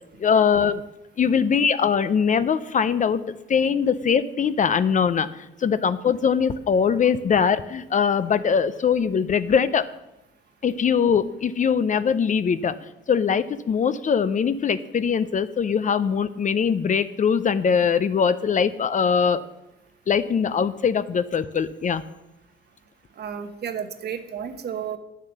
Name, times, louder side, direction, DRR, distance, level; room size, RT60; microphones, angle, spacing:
voice 1, 0.2-0.8 1.2-3.2 3.5-9.9 10.6-12.7 13.1-19.4 20.1-22.0, left 6 dB, 40° left, 14 dB, 0.5 m, -22 dB
voice 2, 23.2-25.0, right 8 dB, 55° right, 8 dB, 1.1 m, -32 dB
9.1 x 7.4 x 6.7 m, 0.93 s
cardioid pair, 90°, 20 cm